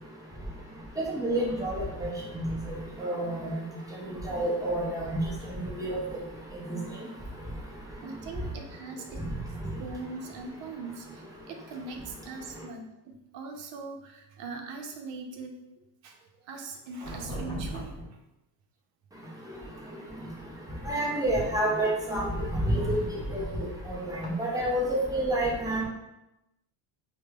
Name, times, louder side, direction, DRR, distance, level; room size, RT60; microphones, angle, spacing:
voice 1, 1.0-3.5 4.2-5.2 5.8-6.0 6.7-6.8 20.9-23.0 23.3-23.4 23.9-25.8, right 1 dB, 10° right, -5 dB, 0.4 m, -29 dB
voice 2, 8.0-9.3 9.8-15.6 16.0-16.2 16.5-17.9, right 3 dB, 65° right, 2 dB, 0.7 m, -41 dB
sound 1, 17.0-18.0 19.6-19.9 21.8-22.1 24.2-24.4, right 1 dB, 30° left, 1.0 m, -37 dB
4.9 x 2.2 x 2.2 m, 0.94 s
cardioid pair, 160°, 47 cm